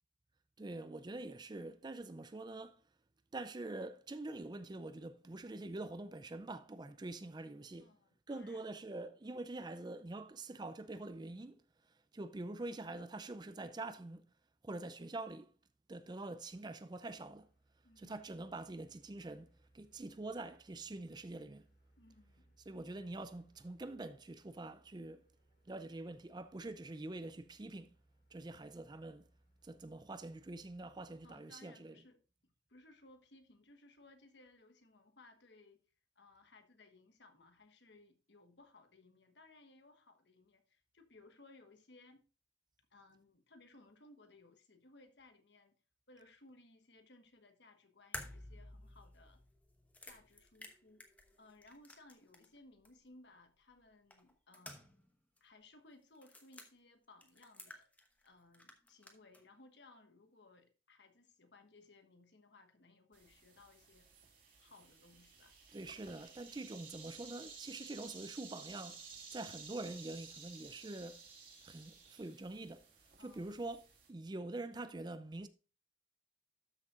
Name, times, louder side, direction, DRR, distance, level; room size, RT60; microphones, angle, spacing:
voice 1, 0.6-2.8 3.3-7.9 8.3-11.6 12.1-14.3 14.6-15.5 15.9-17.5 18.0-21.7 22.7-25.3 25.7-27.9 28.3-29.3 29.6-31.9 65.7-69.1 69.3-71.2 71.6-72.8 73.2-73.8 74.1-75.5, right 2 dB, 20° right, 0.4 m, -45 dB
voice 2, 7.8-8.7 17.8-18.2 22.0-22.6 22.8-23.0 31.2-35.8 36.1-42.2 42.9-45.7 46.1-49.4 50.1-51.1 51.4-54.9 55.4-57.9 58.2-64.1 64.6-65.5 73.2-73.5, left 2 dB, 60° left, 1.3 m, -62 dB
sound 1, 16.1-31.4, right 1 dB, 45° left, 2.9 m, -72 dB
sound 2, 48.1-52.6 52.8-52.9 54.1-55.1 55.4-55.5 56.1-56.7 57.2-58.3 58.5-59.4, left 1 dB, 10° left, 1.0 m, -52 dB
sound 3, 63.1-74.1, right 5 dB, 45° right, 2.7 m, -55 dB
13.0 x 6.5 x 2.4 m
head